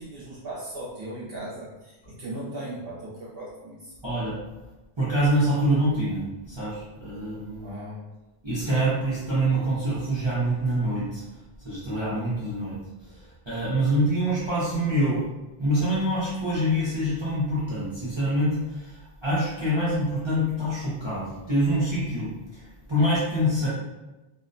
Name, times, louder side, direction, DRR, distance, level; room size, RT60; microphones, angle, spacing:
voice 1, 0.0-3.9 7.6-8.1, right 1 dB, 65° right, -7 dB, 0.8 m, -37 dB
voice 2, 4.0-4.4 5.0-7.7 8.4-11.4 11.6-15.2 15.6-23.7, equal, 35° right, -10 dB, 0.5 m, -26 dB
2.5 x 2.1 x 2.5 m, 1.1 s
omnidirectional pair, 1.1 m